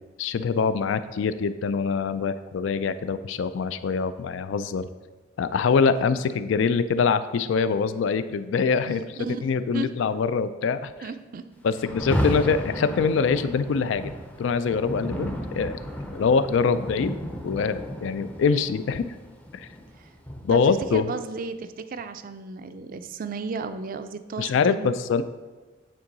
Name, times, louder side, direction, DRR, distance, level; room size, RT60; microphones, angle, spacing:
voice 1, 0.2-4.9 5.4-9.0 9.4-10.9 11.6-14.1 14.4-15.8 16.1-17.2 17.4-19.0 19.5-19.7 20.4-21.1 24.4-25.2, left 5 dB, 70° left, 13 dB, 0.3 m, -24 dB
voice 2, 8.9-9.9 11.0-11.4 20.0-20.1 20.5-24.9, right 4 dB, 45° right, 10 dB, 0.4 m, -34 dB
Rain, 11.8-20.9, equal, 10° left, 0.5 m, -33 dB
8.9 x 3.7 x 3.9 m, 1.3 s
head